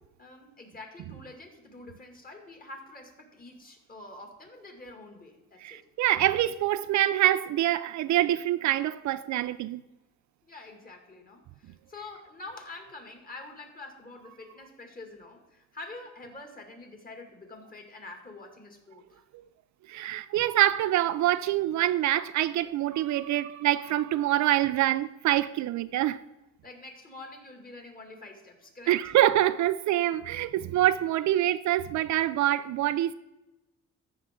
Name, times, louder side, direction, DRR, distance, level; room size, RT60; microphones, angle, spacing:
voice 1, 0.2-5.9 10.4-19.2 26.6-29.1, left 2 dB, 30° left, 2.3 m, -46 dB
voice 2, 5.6-9.8 19.9-26.2 28.9-33.1, right 13 dB, 70° right, 0.5 m, -25 dB
14.0 x 5.7 x 3.7 m
cardioid pair, 90°, 30 cm